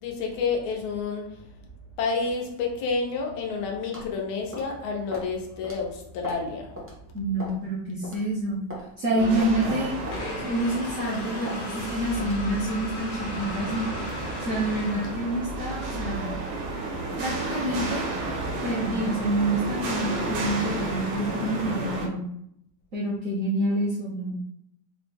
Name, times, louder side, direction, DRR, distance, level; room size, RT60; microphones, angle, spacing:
voice 1, 0.0-1.4 2.0-6.8 9.1-9.8, left 4 dB, 90° left, 1.6 m, -30 dB
sound 1, 3.9-4.1 4.5-4.7 5.1-5.3 5.6-5.8 6.2-6.5 6.8-6.9 7.4-7.6 8.0-8.2 8.7-8.9 9.4-9.5 10.1-10.3 10.7-11.0 11.5-11.6 12.2-12.4, left 1 dB, 20° right, 0.3 m, -38 dB
voice 2, 7.1-8.6 9.0-10.0 10.4-13.9 14.4-16.2 17.2-18.1 18.6-22.2 22.9-24.3, right 1 dB, 65° right, 0.8 m, -27 dB
sound 2, 9.2-22.1, right 2 dB, 85° right, 1.7 m, -32 dB
sound 3, 10.1-15.7, left 2 dB, 65° left, 0.9 m, -38 dB
5.1 x 2.0 x 3.3 m
omnidirectional pair, 2.3 m